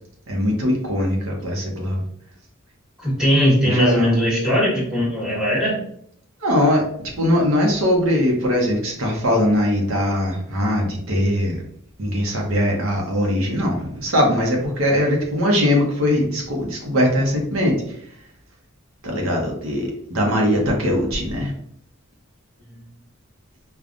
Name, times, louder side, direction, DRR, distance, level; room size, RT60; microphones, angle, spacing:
voice 1, 0.3-2.0 3.6-4.2 6.4-11.6 12.0-18.0 19.0-21.5, left 1 dB, 70° right, 0 dB, 0.8 m, -21 dB
voice 2, 3.0-5.8, equal, 5° right, -7 dB, 1.3 m, -19 dB
5.1 x 2.3 x 2.5 m, 0.68 s
head